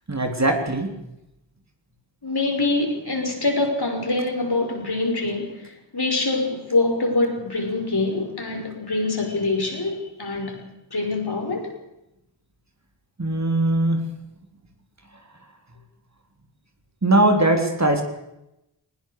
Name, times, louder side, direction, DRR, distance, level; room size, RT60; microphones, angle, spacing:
voice 1, 0.1-0.9 13.2-14.0 17.0-18.0, right 1 dB, 35° right, 4 dB, 3.6 m, -20 dB
voice 2, 2.2-11.8, left 2 dB, 55° left, 3 dB, 6.0 m, -25 dB
20.0 x 20.0 x 6.7 m, 0.87 s
wide cardioid pair, 80°, 46 cm